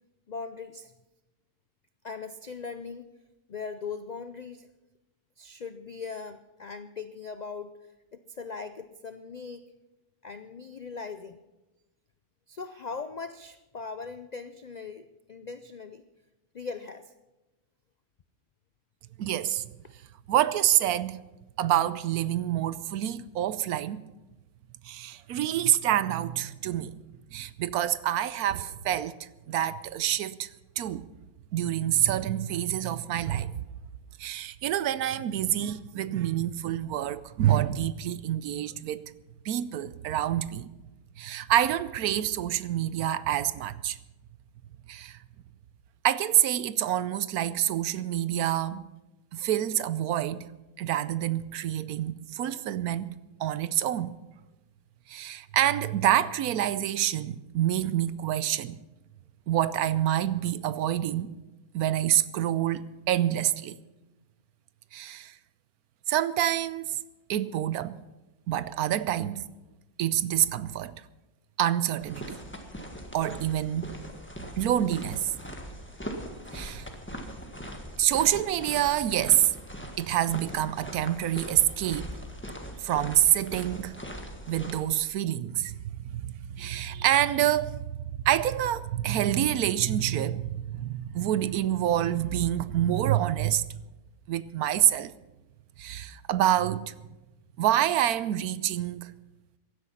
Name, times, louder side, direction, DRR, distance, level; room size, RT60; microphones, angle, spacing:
voice 1, 0.3-0.9 2.0-3.1 3.5-4.7 5.4-7.8 8.1-9.7 10.2-11.4 12.5-16.0 16.5-17.1 19.8-19.9, left 5 dB, 80° left, 0.3 m, -40 dB
voice 2, 19.2-19.6 20.3-21.2 21.6-24.0 24.8-27.0 27.3-30.5 30.8-31.0 31.5-33.5 34.2-39.1 39.4-40.7 41.2-44.0 44.9-45.2 46.0-48.9 49.3-50.5 50.8-53.1 53.4-54.1 55.1-58.8 59.5-61.3 61.7-63.8 64.9-65.3 66.1-67.0 67.3-68.0 68.5-69.5 70.0-70.9 71.6-72.4 73.1-74.0 74.6-75.3 76.5-76.9 78.0-79.5 80.0-82.2 82.8-83.9 84.5-87.8 88.2-93.6 94.3-95.1 95.8-96.9 97.6-99.1, right 12 dB, 80° right, 1.2 m, -27 dB
sound 1, 72.0-84.8, equal, 10° left, 1.5 m, -41 dB
16.0 x 12.0 x 5.7 m
omnidirectional pair, 1.6 m